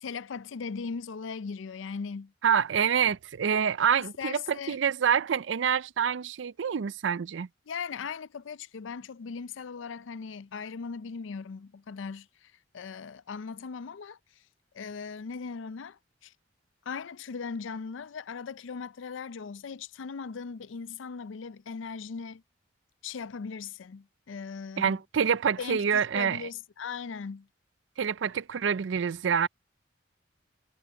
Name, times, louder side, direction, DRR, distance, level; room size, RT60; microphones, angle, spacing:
voice 1, 0.0-2.3 4.2-4.8 7.7-14.2 14.7-16.3 16.9-22.4 23.0-25.0 25.6-27.5, left 5 dB, 80° left, 0.5 m, -39 dB
voice 2, 2.4-7.5 24.8-26.4 28.0-29.5, right 7 dB, 75° right, 0.4 m, -26 dB
head